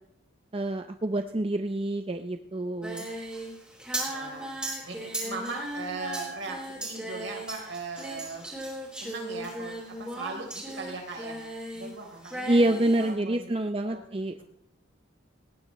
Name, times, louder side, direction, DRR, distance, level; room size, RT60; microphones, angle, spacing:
voice 1, 0.5-3.0 12.5-14.4, right 1 dB, 25° right, 7 dB, 0.6 m, -27 dB
Singing, 2.8-11.9 12.2-13.1, right 1 dB, 5° right, 4.1 m, -37 dB
voice 2, 4.0-8.5 8.9-11.4 11.7-12.6 13.0-13.5 13.8-14.1 14.4-14.5, right 3 dB, 65° right, 0 dB, 3.9 m, -39 dB
19.0 x 17.0 x 3.2 m, 0.75 s
head